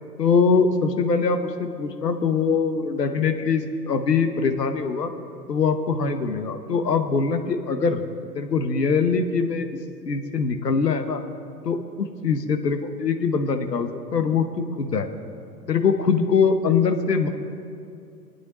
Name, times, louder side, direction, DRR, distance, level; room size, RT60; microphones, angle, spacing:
voice 1, 0.2-5.1 5.5-8.0 8.3-9.7 10.1-11.2 11.6-14.5 14.8-15.1 15.7-17.3, left 5 dB, 75° left, 7 dB, 1.1 m, -22 dB
24.0 x 9.5 x 3.0 m, 2.5 s
figure-of-eight pair, 100°, 50 cm